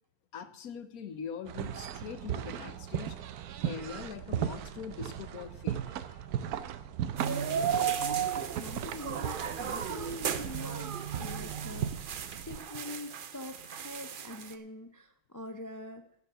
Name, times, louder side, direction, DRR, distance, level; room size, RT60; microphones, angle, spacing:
voice 1, 0.3-3.3 3.6-6.2, left 7 dB, 80° left, 11 dB, 1.4 m, -43 dB
sound 1, 1.5-12.6, right 10 dB, 90° right, 1.2 m, -37 dB
voice 2, 7.2-16.0, left 1 dB, 25° left, 7 dB, 0.4 m, -44 dB
sound 2, 7.2-14.5, right 8 dB, 50° right, 0.6 m, -35 dB
13.5 x 5.9 x 6.6 m, 0.73 s
omnidirectional pair, 1.5 m